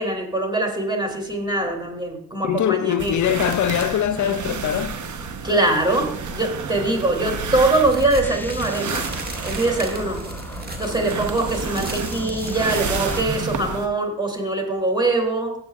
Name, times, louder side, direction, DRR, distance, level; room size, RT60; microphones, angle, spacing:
voice 1, 0.0-3.2 5.4-9.1 9.4-10.2 10.8-15.5, right 2 dB, 15° right, 2.9 m, -23 dB
voice 2, 2.4-5.0, left 10 dB, 65° left, 0.5 m, -22 dB
sound 1, 3.0-13.9, right 5 dB, 65° right, 1.0 m, -30 dB
sound 2, 7.7-13.2, right 1 dB, 30° right, 1.5 m, -37 dB
sound 3, 8.2-13.2, left 1 dB, 5° left, 0.7 m, -37 dB
16.0 x 8.2 x 2.4 m
supercardioid pair, 50°, 32 cm